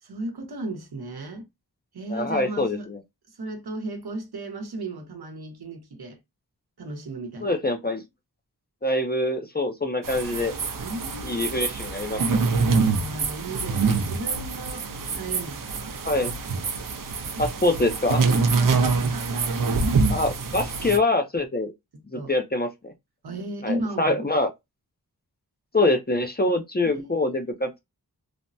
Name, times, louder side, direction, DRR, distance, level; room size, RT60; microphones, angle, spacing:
voice 1, 0.0-1.5 1.9-2.9 3.3-6.2 6.8-7.5 10.8-11.7 12.7-16.0 17.3-17.4 18.2-19.8 21.9-22.3 23.2-24.3 26.8-27.4, right 2 dB, 85° right, 0.8 m, -35 dB
voice 2, 2.1-3.0 7.4-8.0 8.8-10.5 11.2-12.4 16.0-16.3 17.4-18.2 20.1-21.7 22.1-22.9 23.6-24.5 25.7-27.8, left 2 dB, 25° left, 0.5 m, -25 dB
sound 1, 10.0-21.0, right 4 dB, 60° right, 0.6 m, -25 dB
3.3 x 2.0 x 2.6 m
wide cardioid pair, 75°, 37 cm